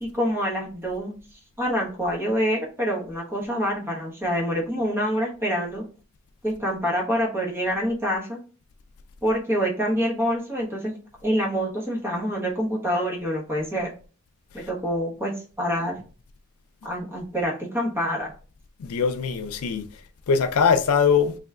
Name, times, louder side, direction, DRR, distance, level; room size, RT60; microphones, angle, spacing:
voice 1, 0.0-5.8 6.4-8.4 9.2-11.0 11.2-13.9 14.5-15.3 15.6-16.0 16.8-18.3, equal, 10° right, 1.1 m, -26 dB
voice 2, 18.8-19.9 20.3-21.4, left 6 dB, 85° left, 0.4 m, -21 dB
3.3 x 3.0 x 3.6 m
head